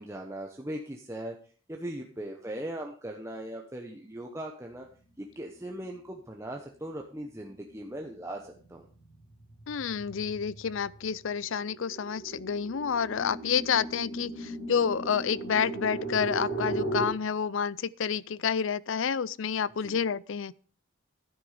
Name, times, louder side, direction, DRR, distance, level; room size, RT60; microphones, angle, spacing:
voice 1, 0.0-1.3 1.7-4.9 5.2-8.9 19.8-20.0, right 1 dB, 15° right, 1.0 m, -39 dB
sound 1, 7.4-7.7 8.1-17.0, right 2 dB, 50° left, 2.9 m, -37 dB
voice 2, 9.7-20.5, left 7 dB, 65° left, 0.4 m, -29 dB
12.0 x 9.8 x 5.0 m
head